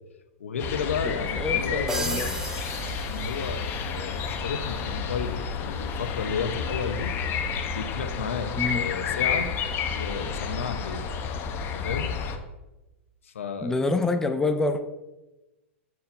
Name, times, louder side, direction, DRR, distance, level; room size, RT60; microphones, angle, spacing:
voice 1, 0.4-2.2 3.1-7.1 7.7-9.5 9.9-11.1 11.7-12.1 13.2-13.8, left 6 dB, 85° left, 8 dB, 0.8 m, -32 dB
sound 1, 0.6-12.4, left 6 dB, 35° left, 0.8 m, -30 dB
voice 2, 1.0-2.3 8.6-8.8 13.6-14.8, left 2 dB, 5° left, 7 dB, 0.5 m, -27 dB
sound 2, 1.9-3.9, right 1 dB, 10° right, 0.9 m, -35 dB
5.6 x 4.5 x 5.3 m, 1.0 s
hypercardioid pair, 120°, 7 cm